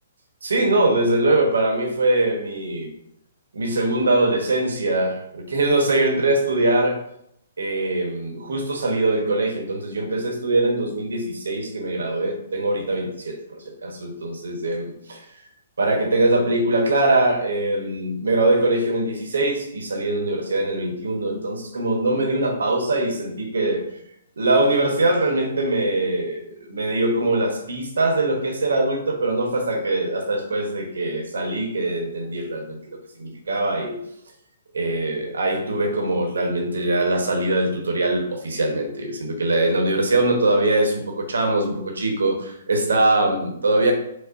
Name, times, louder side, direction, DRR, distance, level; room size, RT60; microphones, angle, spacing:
voice 1, 0.4-2.9 3.5-7.0 7.6-15.2 15.8-23.8 24.4-34.0 34.7-43.9, right 2 dB, 80° right, 3 dB, 0.8 m, -22 dB
5.1 x 2.0 x 2.5 m, 0.75 s
hypercardioid pair, 130°, 0 cm